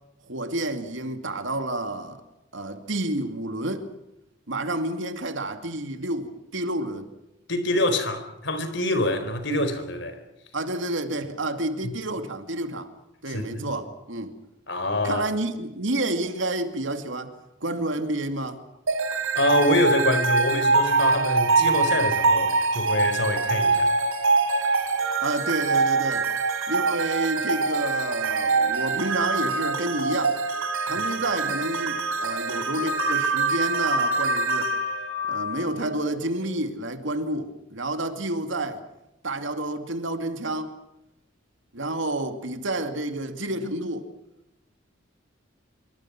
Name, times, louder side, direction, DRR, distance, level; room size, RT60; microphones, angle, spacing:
voice 1, 0.3-2.2 2.5-3.9 4.5-7.1 10.5-12.9 13.2-14.3 15.0-17.3 17.6-18.6 25.2-26.3 26.7-30.4 30.8-34.7 35.3-38.8 39.2-40.7 41.7-44.1, right 1 dB, 65° right, 2.6 m, -29 dB
voice 2, 7.5-10.2 13.3-13.7 14.7-15.2 19.3-23.9, left 1 dB, 60° left, 4.1 m, -25 dB
sound 1, 18.9-36.0, right 3 dB, 90° right, 3.8 m, -24 dB
27.0 x 24.0 x 6.1 m
head